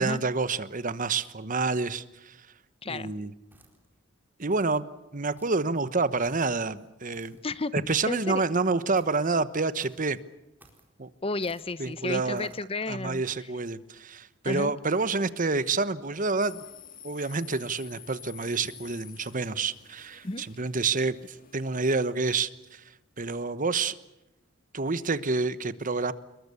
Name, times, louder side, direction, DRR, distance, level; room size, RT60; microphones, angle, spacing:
voice 1, 0.0-2.4 2.9-3.3 4.4-4.9 5.1-7.4 7.7-10.2 11.0-11.1 11.8-12.5 12.9-16.6 17.0-22.8 23.2-23.9 24.7-26.1, right 3 dB, 45° right, 14 dB, 1.1 m, -28 dB
voice 2, 2.8-3.1 7.4-8.4 11.2-13.5 14.4-14.7 20.2-20.4, left 3 dB, 30° left, 16 dB, 0.8 m, -32 dB
sound 1, 3.5-4.0 4.5-4.8 5.4-5.7 6.2-6.6 7.1-7.5 8.9-9.3 9.8-10.1 10.6-10.9 11.4-11.8 12.3-12.6, right 1 dB, 10° right, 4.3 m, -58 dB
sound 2, 16.4-22.1, left 10 dB, 45° left, 1.9 m, -50 dB
27.5 x 22.0 x 7.0 m, 0.94 s
head